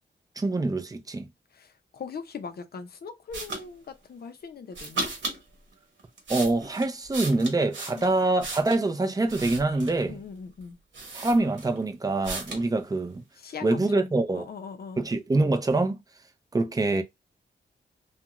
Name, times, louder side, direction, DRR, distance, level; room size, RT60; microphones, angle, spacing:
voice 1, 0.4-1.3 6.3-10.2 11.1-13.2 13.6-14.5 15.0-16.0 16.5-17.0, right 2 dB, 20° right, 0.5 m, -25 dB
voice 2, 1.5-5.1 7.9-8.1 10.0-10.8 13.4-15.0, left 5 dB, 55° left, 0.6 m, -41 dB
sound 1, 3.3-3.6 4.7-5.4 6.0-8.8 9.3-10.1 10.6-10.7 10.9-11.8 12.2-12.7, right 2 dB, 80° right, 1.0 m, -35 dB
2.4 x 2.2 x 2.9 m
wide cardioid pair, 90°, 19 cm